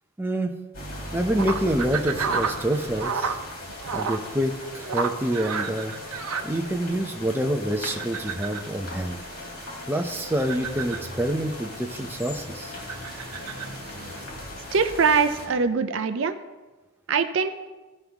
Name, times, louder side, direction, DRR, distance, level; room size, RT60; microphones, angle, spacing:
voice 1, 0.2-0.5 1.1-3.4 3.9-5.9 6.4-9.2 9.9-12.7, right 1 dB, 10° right, 3 dB, 0.6 m, -27 dB
sound 1, 0.7-15.5, left 1 dB, 90° left, 2.7 m, -39 dB
sound 2, 1.2-14.2, right 5 dB, 90° right, 0.7 m, -34 dB
voice 2, 14.7-16.4 17.1-17.5, right 5 dB, 55° right, 9 dB, 0.5 m, -22 dB
15.0 x 5.5 x 3.5 m, 1.2 s
head